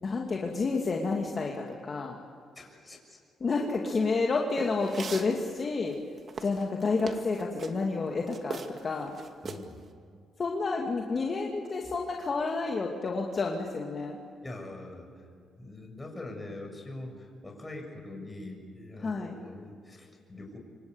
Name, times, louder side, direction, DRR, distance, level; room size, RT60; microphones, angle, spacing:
voice 1, 0.0-2.2 3.4-6.0 6.4-9.2 10.4-14.2 19.0-19.4, left 3 dB, 40° left, 0 dB, 2.6 m, -30 dB
voice 2, 2.5-3.2 8.9-9.0 9.4-9.8 14.4-15.1 15.6-20.6, left 2 dB, 15° left, 2 dB, 6.8 m, -43 dB
sound 1, 4.6-5.3 5.9-7.8 8.3-8.9 9.1-9.7, right 5 dB, 45° right, 2.2 m, -38 dB
27.0 x 25.0 x 8.2 m, 2.2 s
cardioid pair, 90°, 0 cm